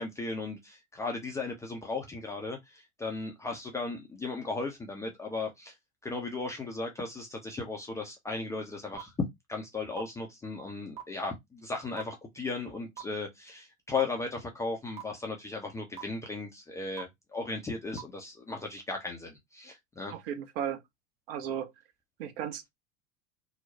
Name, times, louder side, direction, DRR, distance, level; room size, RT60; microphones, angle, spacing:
voice 1, 0.0-5.7 6.0-9.1 9.5-20.1, left 3 dB, 10° left, 0.3 m, -36 dB
sound 1, 9.0-9.1 10.0-10.1 11.0-11.1 12.0-12.1 13.0-13.1 14.0-14.1 15.0-15.1 16.0-16.1 17.0-17.1 18.0-18.1, right 11 dB, 15° right, 1.0 m, -39 dB
voice 2, 20.1-20.8 21.3-21.7 22.2-22.7, right 9 dB, 50° right, 0.6 m, -35 dB
2.8 x 2.0 x 2.7 m
figure-of-eight pair, 80°, 37 cm